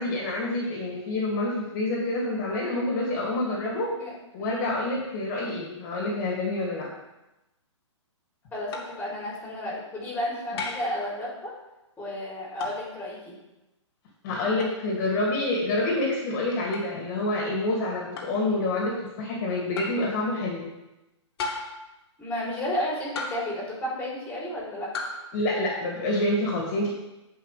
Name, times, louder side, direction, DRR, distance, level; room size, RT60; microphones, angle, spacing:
voice 1, 0.0-3.9 4.3-6.9 10.5-10.6 14.2-20.7 25.3-26.9, left 2 dB, 35° left, -3 dB, 2.6 m, -27 dB
voice 2, 4.4-4.8 8.5-11.5 12.0-13.4 19.8-20.1 22.2-24.9, left 1 dB, 10° left, -6 dB, 3.6 m, -32 dB
wood lumber stabs, 8.7-9.0 10.6-11.0 12.6-12.9 14.6-14.8 16.7-16.9 18.2-18.4 19.8-20.0 21.4-21.9 23.2-23.6 24.9-25.2, left 3 dB, 50° left, 2.2 m, -34 dB
16.5 x 5.6 x 3.4 m, 0.98 s
hypercardioid pair, 145°, 16 cm